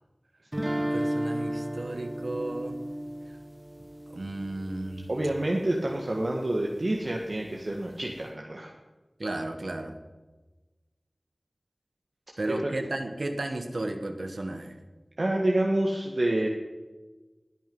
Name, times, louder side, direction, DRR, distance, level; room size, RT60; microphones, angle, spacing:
sound 1, 0.5-5.5, equal, 20° right, 1.2 m, -34 dB
voice 1, 0.7-2.8 4.1-5.1 9.2-9.9 12.4-14.8, right 2 dB, 75° right, 6 dB, 1.4 m, -34 dB
voice 2, 5.1-8.7 15.2-16.5, right 1 dB, 60° right, -1 dB, 1.6 m, -28 dB
20.5 x 9.3 x 5.5 m, 1.2 s
wide cardioid pair, 55°, 0 cm